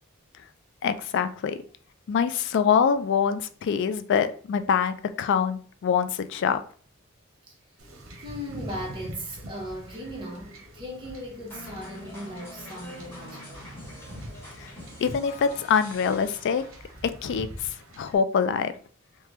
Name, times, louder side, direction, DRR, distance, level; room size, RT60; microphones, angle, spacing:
voice 1, 0.8-1.6 2.1-6.6 14.6-14.7 15.0-16.6 17.2-17.5 18.0-18.7, left 6 dB, 60° left, 0.3 m, -24 dB
Wind / Ocean / Boat Water vehicle, 7.8-18.2, equal, 80° right, 0.8 m, -44 dB
voice 2, 8.2-13.8 14.1-14.4 15.0-15.1, equal, 25° right, 0.8 m, -38 dB
sound 1, 11.5-17.2, left 1 dB, 10° left, 1.3 m, -45 dB
3.2 x 2.2 x 2.9 m
head